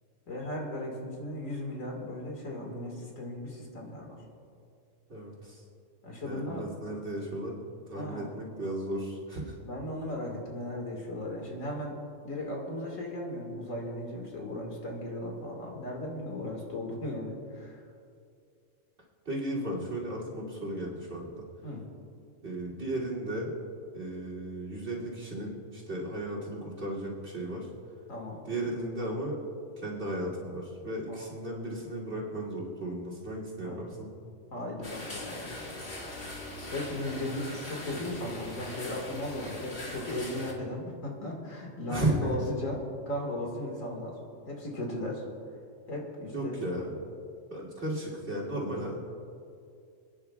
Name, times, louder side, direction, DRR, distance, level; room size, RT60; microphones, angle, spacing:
voice 1, 0.3-4.2 6.0-6.7 7.9-8.3 9.6-12.0 12.2-17.8 21.6-21.8 28.1-28.4 31.1-31.3 33.6-34.0 34.5-35.5 36.7-44.2 44.5-45.2 45.9-46.6, left 1 dB, 85° left, 0 dB, 2.3 m, -36 dB
voice 2, 5.1-5.6 6.2-7.6 7.9-9.6 19.2-21.4 22.4-23.5 23.9-27.7 28.4-29.4 29.8-34.1 41.9-42.3 46.3-46.9 47.5-49.0, right 1 dB, 55° right, -3 dB, 3.1 m, -35 dB
sound 1, 34.8-40.5, left 1 dB, 45° left, 1.9 m, -41 dB
28.0 x 10.0 x 2.4 m, 2.4 s
omnidirectional pair, 1.4 m